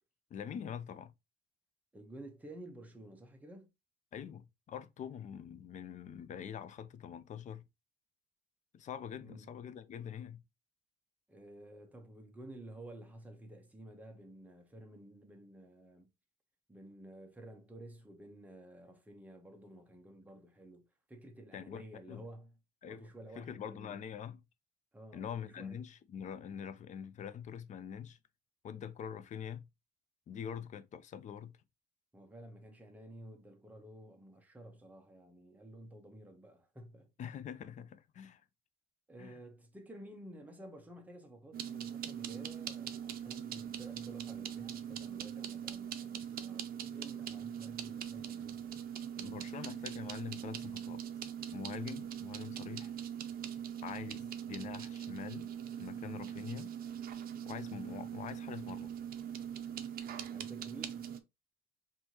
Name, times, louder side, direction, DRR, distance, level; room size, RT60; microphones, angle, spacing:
voice 1, 0.3-1.1 4.1-7.6 8.7-10.4 21.5-21.8 22.1-22.2 22.8-23.1 23.4-24.4 25.1-28.2 28.6-29.7 30.3-31.5 37.2-38.4 39.2-39.4 49.2-51.0 51.5-52.9 53.8-55.5 55.8-56.7 57.5-58.9, left 8 dB, 40° left, 0.4 m, -44 dB
voice 2, 1.9-3.7 9.2-9.5 11.3-16.1 16.7-22.6 22.8-24.0 24.9-25.9 32.1-37.1 39.1-48.8 60.3-61.1, right 1 dB, 10° right, 0.8 m, -52 dB
sound 1, 41.5-61.2, right 9 dB, 55° right, 0.6 m, -42 dB
4.4 x 2.7 x 2.9 m
cardioid pair, 135°, 18 cm